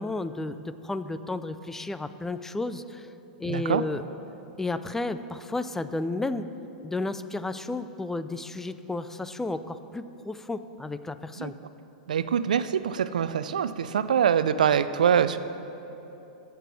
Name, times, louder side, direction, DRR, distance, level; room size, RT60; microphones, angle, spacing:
voice 1, 0.0-3.1 3.4-4.0 4.6-6.5 6.8-11.5, left 2 dB, 10° left, 12 dB, 0.4 m, -32 dB
voice 2, 3.4-3.8 11.4-11.5 12.1-15.4, right 8 dB, 85° right, 13 dB, 0.5 m, -24 dB
14.0 x 6.9 x 6.2 m, 3.0 s
hypercardioid pair, 110°, 4 cm